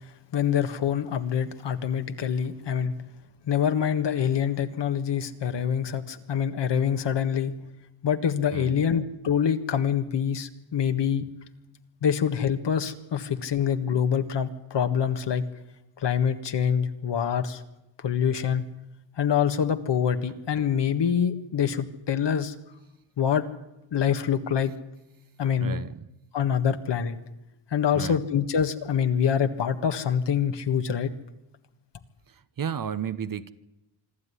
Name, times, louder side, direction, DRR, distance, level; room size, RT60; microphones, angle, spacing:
voice 1, 0.3-2.9 3.5-7.5 8.0-11.3 12.0-15.4 16.0-17.6 18.0-18.6 19.2-22.5 23.2-23.5 23.9-24.7 25.4-25.8 26.3-27.2 27.7-31.1, left 8 dB, 60° left, 8 dB, 1.7 m, -25 dB
voice 2, 25.6-26.1 27.9-28.2 32.3-33.5, right 7 dB, 45° right, 13 dB, 1.1 m, -33 dB
26.0 x 12.0 x 9.9 m, 0.91 s
cardioid pair, 80°, 47 cm